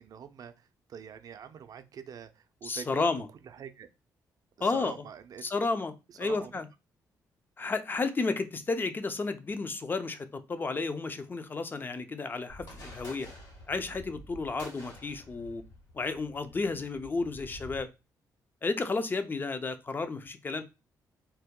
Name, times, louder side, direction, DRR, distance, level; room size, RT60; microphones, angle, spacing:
voice 1, 0.0-3.1 3.4-3.9 4.6-5.4 6.2-6.6, right 7 dB, 55° right, 0.4 m, -45 dB
voice 2, 2.6-3.3 4.6-5.0 5.4-6.7 7.6-13.3 13.7-15.6 15.9-17.9 18.6-20.6, left 3 dB, 25° left, 0.4 m, -32 dB
sound 1, 12.5-17.8, left 1 dB, 60° left, 1.6 m, -49 dB
2.7 x 2.1 x 3.6 m
cardioid pair, 90°, 7 cm